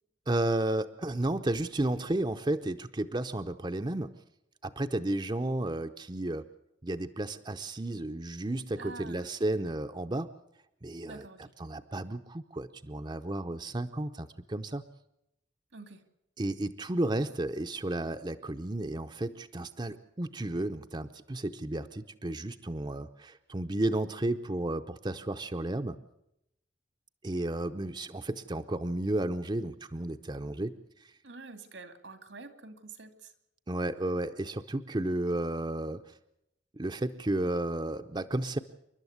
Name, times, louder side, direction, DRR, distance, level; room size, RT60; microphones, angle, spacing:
voice 1, 0.3-4.1 4.6-6.5 6.8-10.3 10.8-11.2 11.6-14.8 16.4-26.0 27.2-30.8 33.7-36.0 36.7-38.6, right 1 dB, 25° right, 7 dB, 0.7 m, -32 dB
voice 2, 8.8-9.6 11.1-11.5 15.7-16.0 31.2-33.3, right 3 dB, 85° right, 9 dB, 2.4 m, -47 dB
28.5 x 12.0 x 8.0 m, 0.81 s
head